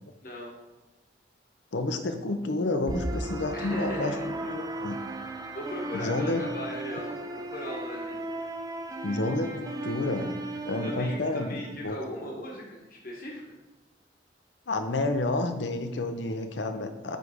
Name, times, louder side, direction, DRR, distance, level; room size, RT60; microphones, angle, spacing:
voice 1, 1.7-5.0 5.9-6.4 9.0-10.4 10.6-12.0 14.7-17.2, left 2 dB, 75° left, 7 dB, 0.7 m, -30 dB
sound 1, 2.9-11.9, right 1 dB, 20° right, 0.5 m, -36 dB
voice 2, 3.5-4.7 5.1-8.2 10.8-13.6, left 1 dB, 50° left, -2 dB, 1.2 m, -38 dB
9.2 x 3.4 x 5.0 m, 1.1 s
head